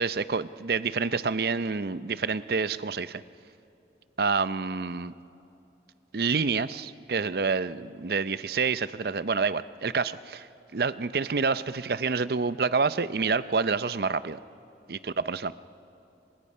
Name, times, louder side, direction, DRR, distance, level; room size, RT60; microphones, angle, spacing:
voice 1, 0.0-3.2 4.2-5.1 6.1-10.5 10.7-14.4 14.9-15.5, right 4 dB, 55° right, 14 dB, 0.5 m, -28 dB
29.5 x 25.5 x 5.5 m, 2.8 s
head